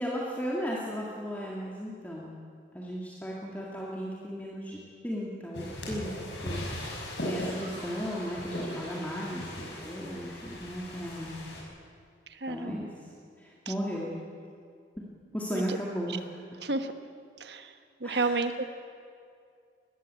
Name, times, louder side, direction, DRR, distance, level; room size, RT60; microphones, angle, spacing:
voice 1, 0.0-2.3 2.7-6.6 6.9-11.3 12.5-13.1 13.4-14.1 15.3-16.2 16.5-16.6 18.0-18.4, equal, 10° left, -4 dB, 2.0 m, -36 dB
sound 1, 5.5-11.6, left 1 dB, 75° left, 5.9 m, -38 dB
sound 2, 7.6-10.0, right 2 dB, 30° right, 4.4 m, -53 dB
voice 2, 12.3-12.9 13.6-13.7 15.5-15.8 16.6-16.9 17.4-17.7 18.0-18.6, right 3 dB, 65° right, 9 dB, 1.2 m, -31 dB
19.5 x 15.0 x 8.9 m, 2.3 s
head